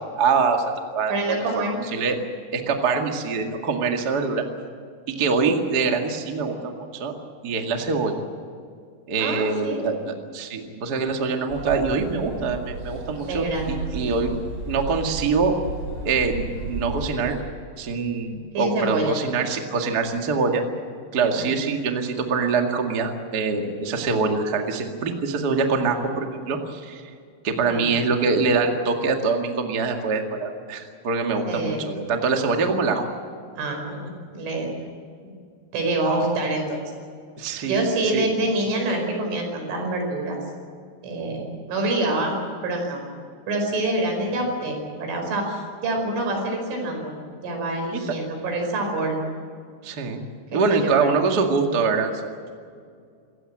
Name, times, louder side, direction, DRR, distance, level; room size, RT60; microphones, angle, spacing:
voice 1, 0.1-2.2 2.5-4.4 5.1-7.1 7.4-8.1 9.1-9.9 10.3-14.3 14.6-15.5 16.0-17.3 17.8-20.6 21.1-27.0 27.4-33.0 37.4-37.8 38.1-38.3 49.8-50.2 50.5-52.1, right 4 dB, 55° right, 3 dB, 1.0 m, -24 dB
voice 2, 1.1-1.8 9.2-9.9 13.2-14.2 18.5-19.2 21.3-21.6 27.6-28.1 31.5-31.9 33.6-34.7 35.7-36.8 37.6-40.4 41.0-43.0 43.5-47.1 47.4-49.2 50.5-51.2, right 2 dB, 80° right, 2 dB, 7.5 m, -26 dB
sound 1, 11.5-17.3, right 2 dB, 30° right, 6.2 m, -34 dB
27.0 x 15.5 x 8.8 m, 2.2 s
omnidirectional pair, 5.5 m